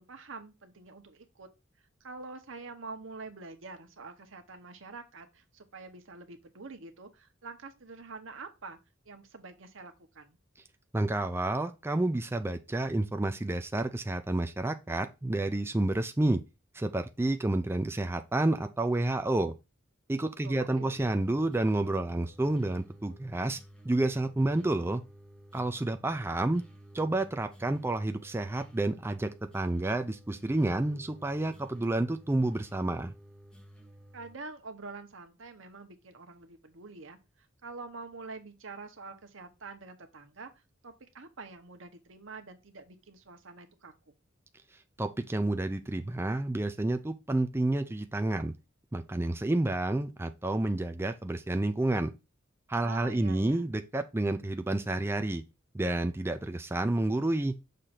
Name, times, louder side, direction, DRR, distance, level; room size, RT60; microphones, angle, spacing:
voice 1, 0.0-1.5 2.0-8.8 9.0-10.4 20.4-21.0 34.1-40.5 40.8-44.1 52.8-53.7, right 3 dB, 75° right, 1.0 m, -46 dB
voice 2, 10.9-16.4 16.7-19.5 20.1-23.6 23.8-25.0 25.5-26.6 26.9-33.1 45.0-48.5 48.9-52.1 52.7-55.4 55.7-57.5, right 2 dB, 10° right, 0.4 m, -29 dB
sound 1, 20.9-34.4, right 1 dB, 5° left, 0.9 m, -53 dB
6.6 x 2.6 x 5.6 m
head